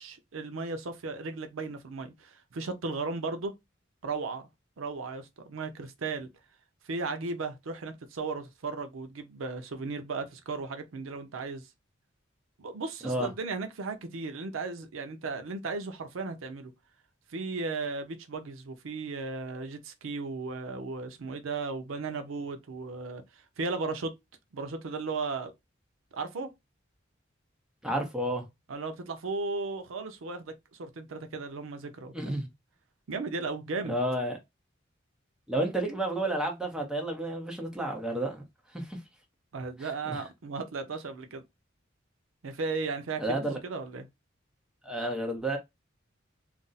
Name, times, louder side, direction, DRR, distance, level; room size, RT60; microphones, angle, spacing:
voice 1, 0.0-3.5 4.0-4.4 4.8-6.3 6.8-11.7 12.6-16.7 17.3-24.1 24.5-25.5 26.1-26.5 28.7-32.3 33.1-33.9 39.5-41.4 42.4-44.1, right 3 dB, 85° right, 0.5 m, -36 dB
voice 2, 27.8-28.4 32.1-32.5 33.8-34.4 35.5-38.4 38.7-39.0 39.8-40.2 43.2-43.5 44.8-45.6, right 1 dB, 5° right, 0.7 m, -31 dB
2.5 x 2.0 x 3.9 m
head